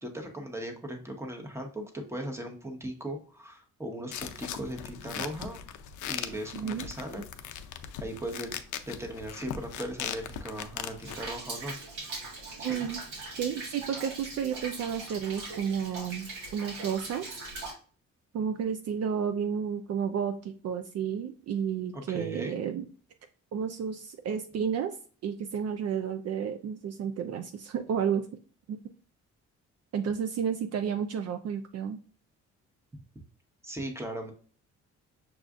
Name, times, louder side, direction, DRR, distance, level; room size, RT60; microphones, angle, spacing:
voice 1, 0.0-5.6 6.1-7.3 8.0-8.5 8.9-11.8 12.6-12.9 21.9-22.6 33.6-34.3, right 1 dB, 10° right, 3 dB, 0.9 m, -38 dB
sound 1, 4.1-11.3, left 9 dB, 75° left, 0.5 m, -39 dB
voice 2, 6.5-6.9 12.6-13.0 13.4-17.3 18.3-22.8 23.5-25.0 25.2-28.3 28.7-28.8 29.9-32.0, right 7 dB, 55° right, 7 dB, 0.4 m, -31 dB
Rain, 11.0-17.7, right 3 dB, 90° right, 1.6 m, -40 dB
6.2 x 2.4 x 2.4 m, 0.42 s
cardioid pair, 90°, 30 cm